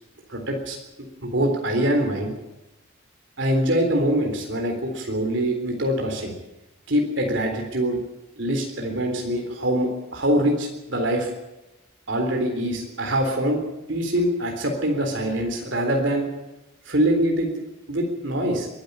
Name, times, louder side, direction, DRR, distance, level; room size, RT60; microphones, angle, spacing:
voice 1, 0.3-0.8 1.2-2.3 3.4-6.3 6.9-8.0 8.4-11.3 12.1-16.3 16.9-17.5 17.9-18.7, right 1 dB, 60° right, 2 dB, 3.7 m, -24 dB
23.0 x 11.5 x 9.7 m, 0.96 s
head